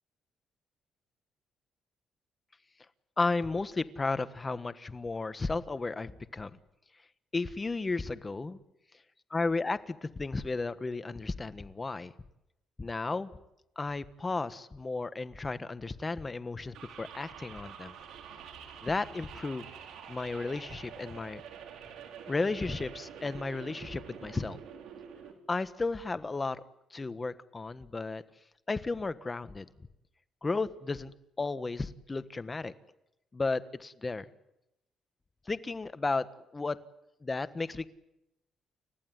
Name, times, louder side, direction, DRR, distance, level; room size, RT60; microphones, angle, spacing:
voice 1, 3.2-6.5 7.3-8.6 9.3-12.1 12.8-13.3 13.8-17.9 18.8-19.7 20.1-21.4 22.3-24.6 25.5-26.6 26.9-28.2 28.7-29.7 30.4-31.1 31.4-32.7 33.3-34.3 35.5-36.3 36.5-36.8 37.2-37.9, left 3 dB, 25° left, 13 dB, 1.4 m, -33 dB
sound 1, 16.7-25.3, right 7 dB, 85° right, 4.2 m, -47 dB
29.5 x 15.0 x 9.6 m, 0.88 s
cardioid pair, 90°, 0 cm